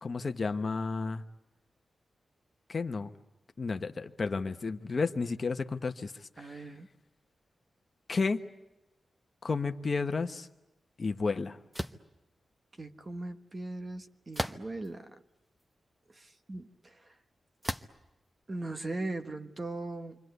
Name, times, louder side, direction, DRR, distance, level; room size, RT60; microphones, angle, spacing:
voice 1, 0.0-1.2 2.7-3.1 3.6-6.1 6.4-6.6 8.1-8.4 9.4-10.5 11.0-11.6, left 4 dB, 45° left, 1.1 m, -32 dB
voice 2, 6.4-6.9 12.8-15.2 16.1-17.0 18.5-20.2, right 2 dB, 30° right, 1.4 m, -39 dB
sound 1, 11.7-12.1 14.3-14.9 15.6-15.7 17.6-18.0, equal, 5° right, 1.0 m, -35 dB
28.5 x 24.5 x 8.1 m
wide cardioid pair, 115°, 0 cm